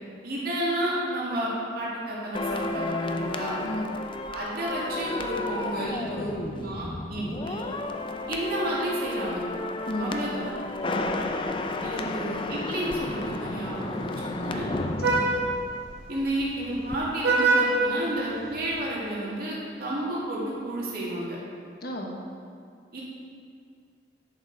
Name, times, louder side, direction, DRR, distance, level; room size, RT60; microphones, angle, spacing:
voice 1, 0.2-3.6 4.3-6.3 6.6-7.7 8.3-9.4 10.0-10.4 11.8-14.7 16.1-21.4 22.9-23.0, right 1 dB, 55° right, -6 dB, 2.3 m, -31 dB
sound 1, 2.3-16.5 16.7-17.0, left 2 dB, 30° left, 0.5 m, -32 dB
voice 2, 3.6-4.0 6.2-6.4 7.1-7.3 9.9-10.5 10.9-11.2 12.1-12.2 14.4-14.7 15.0-15.4 21.8-22.2, left 1 dB, 60° left, 1 dB, 1.2 m, -35 dB
Vehicle horn car horn honking, 10.7-18.8, right 3 dB, 85° right, 1.9 m, -30 dB
10.5 x 6.7 x 4.7 m, 2.3 s
head